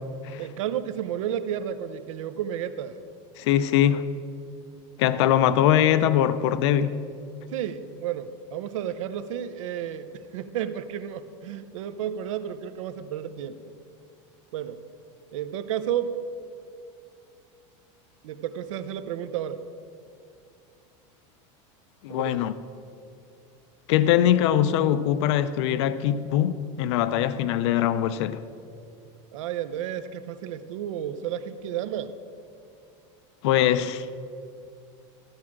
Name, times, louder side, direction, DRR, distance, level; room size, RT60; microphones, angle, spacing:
voice 1, 0.4-3.0 7.5-13.7 14.5-14.8 15.3-16.2 18.2-19.6 22.1-22.4 29.3-32.2, right 10 dB, 80° right, 0.7 m, -32 dB
voice 2, 3.4-4.0 5.0-7.0 22.0-22.5 23.9-28.4 33.4-34.1, left 11 dB, 60° left, 0.5 m, -22 dB
13.5 x 4.8 x 7.3 m
supercardioid pair, 170°, 16 cm